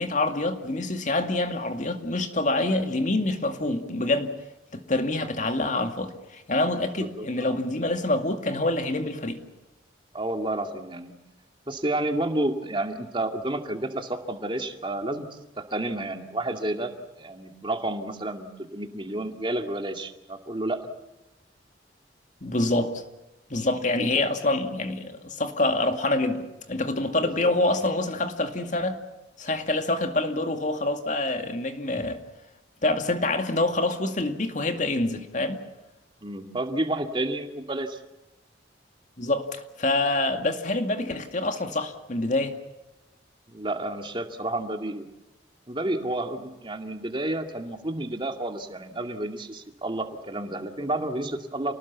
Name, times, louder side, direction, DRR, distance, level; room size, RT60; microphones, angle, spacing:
voice 1, 0.0-4.3 4.7-9.4 22.4-23.0 23.5-29.0 29.4-32.2 32.8-35.6 39.2-42.5, left 2 dB, 40° left, 2.3 m, -26 dB
voice 2, 7.0-7.6 10.1-11.1 11.7-15.3 15.6-16.9 17.2-20.8 24.0-24.3 27.2-27.8 36.2-38.0 43.5-45.1 45.7-51.7, right 1 dB, 25° right, 2.3 m, -30 dB
29.0 x 19.5 x 7.1 m
head